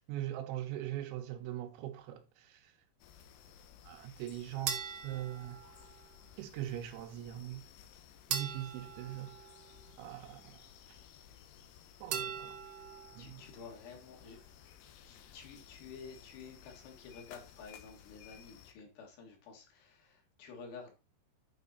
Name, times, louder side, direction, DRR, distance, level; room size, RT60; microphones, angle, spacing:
voice 1, 0.1-2.6 3.8-5.6 6.4-7.6 8.3-9.3 10.0-10.6 12.0-12.6 13.1-13.4, right 13 dB, 90° right, 3.2 m, -41 dB
sound 1, 3.0-18.7, left 9 dB, 85° left, 2.0 m, -57 dB
sound 2, 4.7-6.2 8.3-10.1 12.1-13.2, right 8 dB, 75° right, 1.9 m, -41 dB
voice 2, 13.2-14.4 15.0-20.9, left 5 dB, 70° left, 3.6 m, -51 dB
9.1 x 4.2 x 4.1 m
omnidirectional pair, 5.2 m